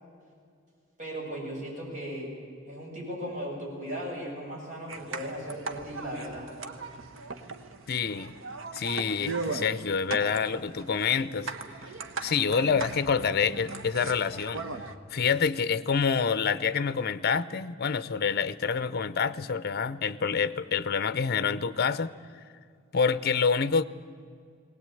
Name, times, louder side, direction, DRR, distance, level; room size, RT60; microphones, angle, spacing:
voice 1, 1.0-2.3 2.7-6.5, equal, 40° right, -3 dB, 7.6 m, -37 dB
sound 1, 4.9-15.0, right 3 dB, 75° right, 1.3 m, -38 dB
voice 2, 7.9-8.3 8.7-11.5 12.2-14.6 15.1-22.1 22.9-23.8, left 6 dB, 55° left, 16 dB, 0.7 m, -27 dB
20.0 x 18.0 x 9.1 m, 2.2 s
head